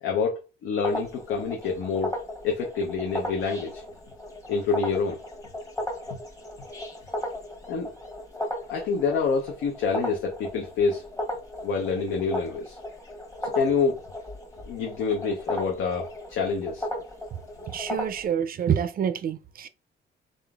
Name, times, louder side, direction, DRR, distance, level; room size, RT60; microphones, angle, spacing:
voice 1, 0.0-2.1 2.4-3.8 4.5-5.2 7.7-7.9 8.7-11.0 11.6-12.8 13.4-14.0 14.7-16.9, left 5 dB, 85° left, 0.7 m, -27 dB
sound 1, 0.8-18.3, left 1 dB, 15° left, 1.0 m, -35 dB
voice 2, 17.7-19.7, right 8 dB, 45° right, 0.4 m, -27 dB
3.9 x 3.6 x 2.3 m
cardioid pair, 90°, 20 cm